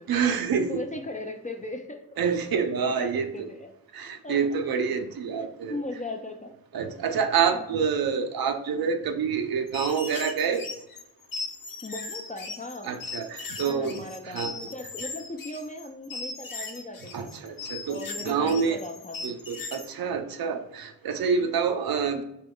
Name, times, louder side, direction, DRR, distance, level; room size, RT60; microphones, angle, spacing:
voice 1, 0.1-0.8 2.2-3.5 3.9-5.8 6.7-10.6 12.8-14.7 17.1-18.0 18.2-18.8 19.2-22.2, right 6 dB, 60° right, 7 dB, 0.5 m, -27 dB
voice 2, 0.7-2.0 2.8-3.7 4.2-4.4 5.7-6.5 7.5-7.7 11.8-12.9 13.6-17.3 17.9-19.4 21.4-21.5, left 2 dB, 20° left, 4 dB, 0.4 m, -38 dB
sound 1, 9.7-19.9, left 3 dB, 55° left, 0.7 m, -38 dB
2.8 x 2.3 x 3.6 m, 0.84 s
supercardioid pair, 40°, 41 cm